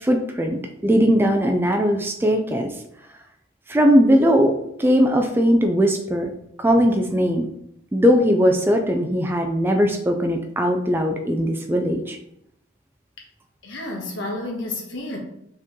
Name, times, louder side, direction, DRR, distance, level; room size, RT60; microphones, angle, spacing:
voice 1, 0.0-2.7 3.7-6.3 6.6-7.5 7.9-12.2, equal, 10° right, 4 dB, 0.3 m, -19 dB
voice 2, 13.6-15.2, left 2 dB, 75° left, 1 dB, 1.2 m, -30 dB
4.5 x 3.1 x 3.6 m, 0.78 s
head